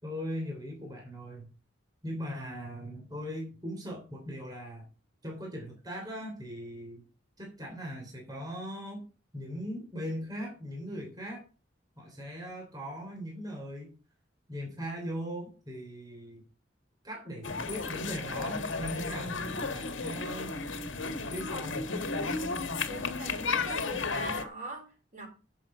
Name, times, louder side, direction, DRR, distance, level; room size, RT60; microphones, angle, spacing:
voice 1, 0.0-1.5 2.0-4.9 5.2-7.0 7.4-9.0 9.3-11.4 12.0-13.9 14.5-16.4 17.0-20.6 21.3-21.8, equal, 20° right, 3.3 m, -39 dB
sound 1, 17.4-24.4, left 4 dB, 80° left, 1.5 m, -33 dB
voice 2, 22.9-25.3, right 1 dB, 40° right, 4.0 m, -41 dB
11.0 x 7.3 x 4.9 m
head